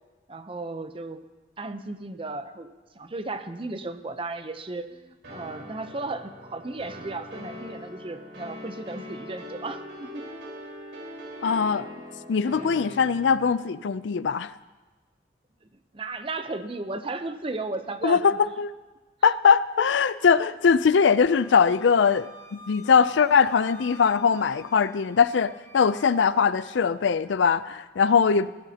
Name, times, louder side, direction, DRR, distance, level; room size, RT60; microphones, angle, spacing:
voice 1, 0.3-1.2 1.6-10.4 15.9-18.4, right 2 dB, 30° right, 9 dB, 0.7 m, -35 dB
sound 1, 5.2-13.5, left 1 dB, 85° right, 4.4 m, -41 dB
voice 2, 11.4-11.9 12.3-14.5 18.0-18.7 19.2-28.5, left 6 dB, 80° left, 15 dB, 0.4 m, -21 dB
Wind instrument woodwind instrument, 21.1-26.3, left 1 dB, 15° left, 0.9 m, -49 dB
21.5 x 15.0 x 2.9 m, 1.2 s
head